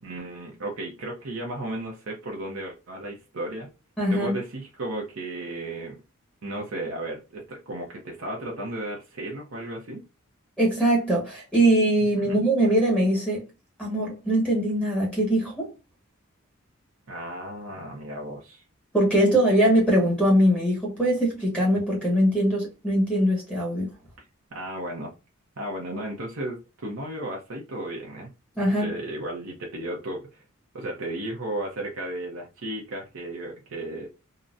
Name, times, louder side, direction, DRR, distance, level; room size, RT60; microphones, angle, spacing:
voice 1, 0.0-3.7 4.1-6.0 6.4-10.0 12.2-12.4 17.1-18.6 24.5-25.1 25.6-28.3 28.8-30.4 30.7-34.1, right 1 dB, 75° right, 0.7 m, -34 dB
voice 2, 4.0-4.3 10.6-13.4 13.8-15.7 18.9-23.9 28.6-28.9, right 1 dB, 5° left, 1.0 m, -22 dB
3.8 x 2.1 x 2.4 m
head